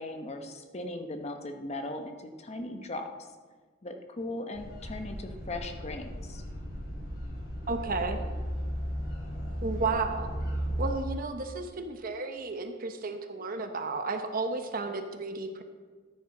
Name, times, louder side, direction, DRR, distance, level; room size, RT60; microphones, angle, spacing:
voice 1, 0.0-3.1 3.8-6.4, left 2 dB, 30° left, 6 dB, 0.8 m, -38 dB
sound 1, 4.5-10.9, equal, 60° left, 4.1 m, -35 dB
voice 2, 7.7-8.2 9.6-10.3 10.8-15.6, right 3 dB, 45° right, 7 dB, 0.9 m, -33 dB
14.0 x 9.2 x 3.9 m, 1.5 s
head